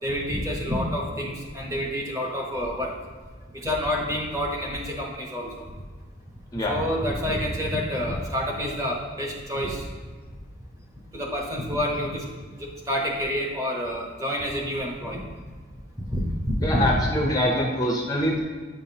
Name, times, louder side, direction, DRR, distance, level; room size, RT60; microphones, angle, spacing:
voice 1, 0.0-2.9 3.5-5.6 6.7-9.9 11.1-12.3 12.6-15.3 16.1-16.2 16.5-16.8, equal, 15° right, -1 dB, 0.9 m, -28 dB
voice 2, 16.6-18.4, left 1 dB, 20° left, -1 dB, 0.5 m, -24 dB
8.7 x 5.5 x 2.8 m, 1.5 s
head